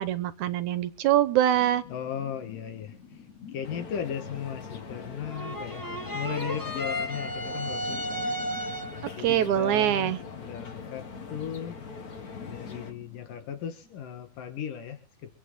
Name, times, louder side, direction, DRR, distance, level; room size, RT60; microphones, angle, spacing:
voice 1, 0.0-1.8 9.2-10.2, right 11 dB, 70° right, 13 dB, 2.3 m, -24 dB
sound 1, 1.5-14.2, left 6 dB, 55° left, 3.8 m, -48 dB
voice 2, 1.9-3.3 3.5-5.8 6.1-8.5 9.1-11.8 12.5-15.3, left 8 dB, 85° left, 6 dB, 3.4 m, -37 dB
sound 2, 3.6-12.9, left 5 dB, 40° left, 1.5 m, -42 dB
sound 3, 5.3-9.2, equal, 15° left, 0.7 m, -33 dB
25.5 x 9.2 x 3.9 m, 0.36 s
omnidirectional pair, 3.7 m